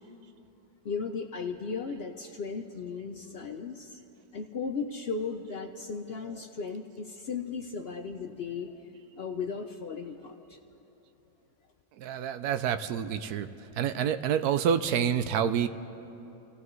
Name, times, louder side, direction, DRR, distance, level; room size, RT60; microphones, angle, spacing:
voice 1, 0.8-4.0 4.3-8.9 9.1-10.6, left 5 dB, 60° left, 5 dB, 0.6 m, -36 dB
voice 2, 12.0-13.5 13.8-15.7, right 8 dB, 80° right, 11 dB, 1.1 m, -28 dB
28.0 x 15.5 x 3.2 m, 3.0 s
omnidirectional pair, 1.6 m